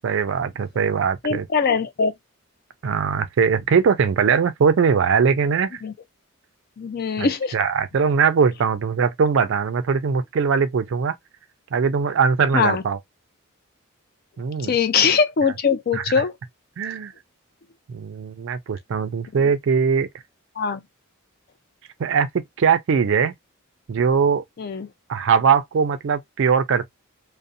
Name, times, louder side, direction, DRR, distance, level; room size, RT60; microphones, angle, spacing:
voice 1, 0.0-1.5 2.8-5.8 7.2-7.3 7.5-11.2 11.7-13.0 14.4-14.7 15.9-16.0 16.8-17.1 17.9-20.1 22.0-22.3 22.6-23.3 23.9-24.4 25.1-26.9, right 6 dB, 60° right, 0.3 m, -20 dB
voice 2, 1.2-2.1 5.8-5.9 6.8-7.6 12.5-12.8 14.6-16.3 20.6-20.8 24.6-24.9, left 5 dB, 45° left, 0.4 m, -21 dB
2.5 x 2.0 x 2.6 m
head